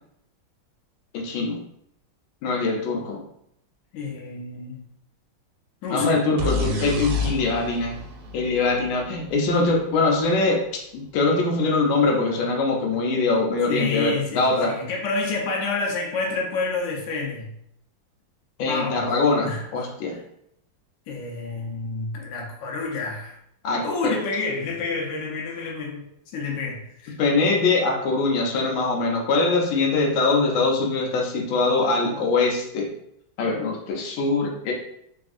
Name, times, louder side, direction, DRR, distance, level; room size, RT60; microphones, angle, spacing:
voice 1, 1.1-1.6 2.4-3.2 5.9-8.0 8.3-10.6 10.9-14.7 18.6-20.2 23.6-24.2 27.2-32.8 33.4-34.7, left 3 dB, 90° left, 0 dB, 1.4 m, -22 dB
voice 2, 3.9-4.8 5.8-6.2 13.7-17.5 18.7-19.1 19.4-19.7 20.1-20.2 21.1-23.4 23.8-26.0 26.3-27.1, left 3 dB, 75° left, -1 dB, 1.3 m, -29 dB
sound 1, 6.4-10.1, left 3 dB, 90° right, 1.4 m, -29 dB
3.4 x 2.4 x 2.4 m, 0.74 s
omnidirectional pair, 2.1 m